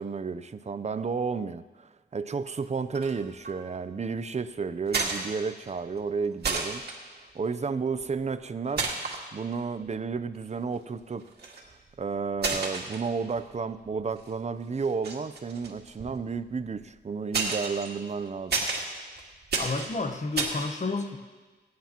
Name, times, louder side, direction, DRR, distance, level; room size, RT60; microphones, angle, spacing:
voice 1, 0.0-6.8 7.1-8.9 9.3-11.3 12.0-18.6, right 5 dB, 40° right, 12 dB, 0.6 m, -32 dB
sound 1, 2.9-3.2 3.4-3.8 4.9-5.7 6.0-6.1 6.4-7.0 8.0-8.3 8.8-9.2 9.9-10.0 11.2-11.7 12.3-13.6 13.9-14.3 14.8-16.8 17.3-20.6, right 4 dB, 60° right, 2.0 m, -31 dB
voice 2, 19.6-21.2, left 3 dB, 40° left, 7 dB, 1.1 m, -30 dB
22.5 x 9.5 x 3.0 m, 1.3 s
cardioid pair, 75°, 18 cm